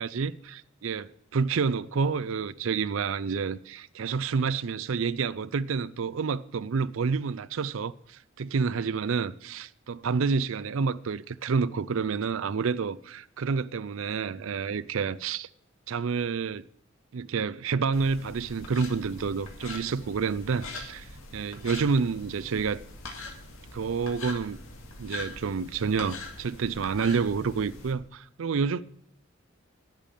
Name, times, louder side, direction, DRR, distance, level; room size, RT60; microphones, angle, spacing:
voice 1, 0.0-15.5 15.9-16.6 17.1-22.8 23.7-24.6 25.0-28.8, right 5 dB, 70° right, 0.5 m, -29 dB
sound 1, 17.9-27.9, left 2 dB, 85° left, 2.2 m, -43 dB
10.5 x 6.6 x 9.0 m
head